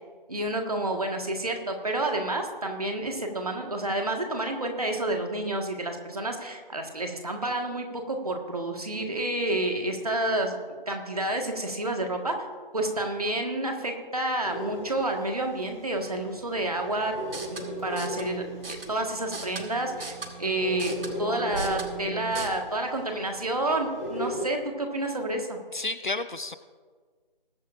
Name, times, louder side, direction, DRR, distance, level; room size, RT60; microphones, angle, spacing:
voice 1, 0.3-10.6 10.9-12.3 12.7-17.1 17.5-25.6, right 1 dB, 40° right, 3 dB, 1.6 m, -29 dB
sound 1, 14.4-24.4, equal, 15° left, 3.2 m, -38 dB
sound 2, 17.2-22.5, right 4 dB, 75° right, 1.7 m, -39 dB
voice 2, 25.7-26.6, left 3 dB, 55° left, 13 dB, 0.6 m, -31 dB
20.5 x 9.3 x 2.6 m, 1.5 s
figure-of-eight pair, 175°, 29 cm